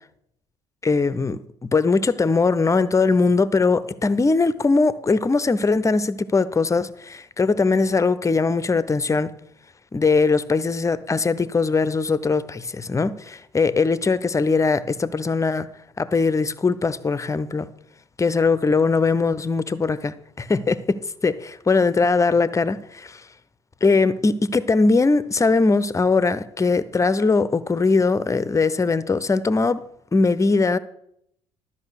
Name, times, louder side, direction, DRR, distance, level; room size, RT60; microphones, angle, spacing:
voice 1, 0.8-9.3 9.9-15.7 16.0-17.7 18.2-23.2 23.8-29.8 30.1-30.8, left 4 dB, 20° left, 0.7 m, -20 dB
12.5 x 5.7 x 6.5 m
hypercardioid pair, 55°, 15 cm